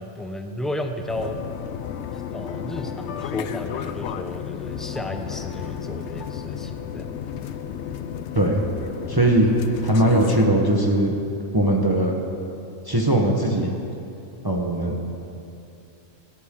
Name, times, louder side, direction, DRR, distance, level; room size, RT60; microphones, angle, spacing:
voice 1, 0.0-1.4 2.1-7.2, left 1 dB, ahead, 5 dB, 0.6 m, -33 dB
sound 1, 1.1-10.5, left 8 dB, 70° left, 0.8 m, -32 dB
voice 2, 9.1-9.6 9.8-11.1 11.5-12.2 12.8-13.7 14.4-15.1, right 1 dB, 20° right, 0 dB, 1.1 m, -20 dB
25.0 x 8.8 x 3.7 m, 2.6 s
omnidirectional pair, 1.3 m